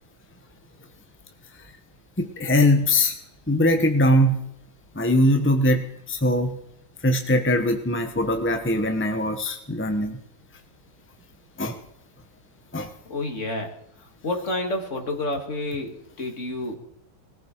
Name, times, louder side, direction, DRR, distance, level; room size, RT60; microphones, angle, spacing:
voice 1, 2.2-3.2 3.5-4.4 4.9-6.6 7.0-10.2 11.6-11.8 12.7-12.9, left 1 dB, 10° left, 5 dB, 0.6 m, -21 dB
voice 2, 13.1-13.7 14.2-16.8, left 1 dB, 35° left, 2 dB, 2.5 m, -29 dB
20.5 x 15.0 x 4.6 m, 0.79 s
omnidirectional pair, 2.2 m